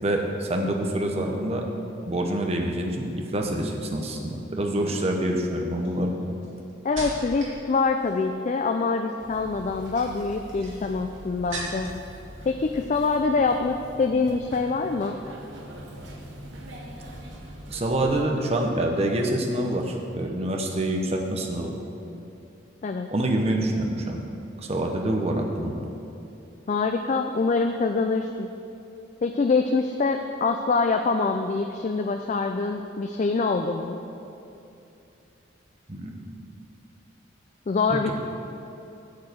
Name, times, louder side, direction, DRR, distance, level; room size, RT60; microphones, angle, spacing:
voice 1, 0.0-1.6 2.1-6.1 17.7-21.7 23.1-24.2 24.6-25.9 35.9-36.2 37.9-38.1, right 1 dB, 30° right, 1 dB, 0.9 m, -26 dB
sound 1, 4.2-4.5 5.2-7.6 7.9-8.4 9.6-12.1 12.4-13.0 13.3-13.6, right 2 dB, 90° right, 2.5 m, -40 dB
voice 2, 6.8-11.9 12.5-15.2 22.8-23.1 26.7-28.5 29.2-34.0 37.7-38.1, left 4 dB, 40° left, 6 dB, 0.3 m, -25 dB
sound 2, 9.2-18.3, equal, 65° right, 1.1 m, -43 dB
9.4 x 4.7 x 7.8 m, 2.8 s
head